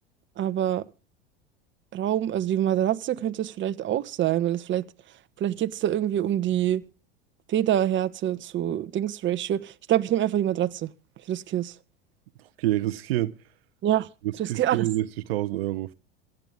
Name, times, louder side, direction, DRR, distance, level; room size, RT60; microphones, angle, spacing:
voice 1, 0.4-0.8 1.9-4.8 5.4-6.8 7.5-10.9 11.3-11.7 13.8-14.1 14.4-14.9, right 11 dB, 40° right, 1.3 m, -25 dB
voice 2, 12.6-13.3 14.5-15.9, right 15 dB, 70° right, 1.0 m, -27 dB
26.5 x 9.4 x 3.7 m
hypercardioid pair, 80°, 30 cm